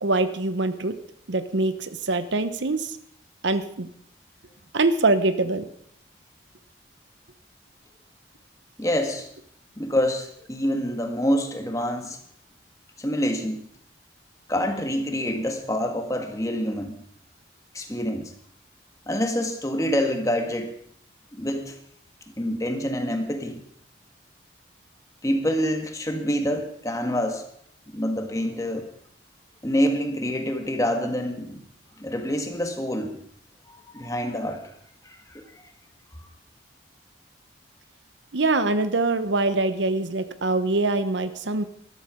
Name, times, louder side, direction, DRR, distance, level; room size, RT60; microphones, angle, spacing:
voice 1, 0.0-1.0 1.3-2.9 3.4-3.9 4.7-5.7 38.3-41.6, right 2 dB, 80° right, 12 dB, 0.9 m, -24 dB
voice 2, 8.8-9.3 9.8-12.2 13.0-13.6 14.5-17.0 17.7-18.3 19.1-20.7 21.3-21.8 22.4-23.6 25.2-27.4 27.9-28.9 29.6-31.6 32.0-33.2 33.7-34.6 35.0-35.7, equal, 15° left, 5 dB, 1.5 m, -26 dB
13.5 x 12.5 x 5.0 m, 0.67 s
head